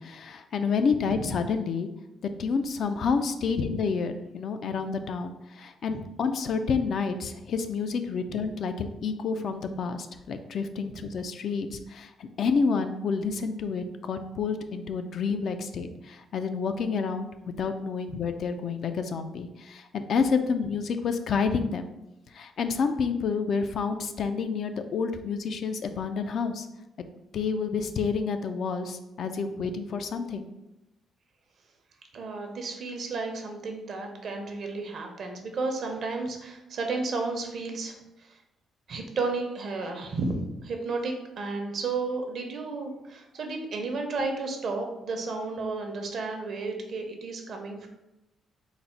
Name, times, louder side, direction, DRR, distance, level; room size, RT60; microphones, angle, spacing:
voice 1, 0.0-1.9 2.4-21.9 22.3-26.7 27.3-30.5, left 5 dB, 60° left, 8 dB, 0.3 m, -29 dB
voice 2, 32.1-38.4 38.9-47.9, right 3 dB, 60° right, 3 dB, 0.7 m, -33 dB
4.0 x 2.0 x 4.5 m, 0.92 s
cardioid pair, 90°, 0 cm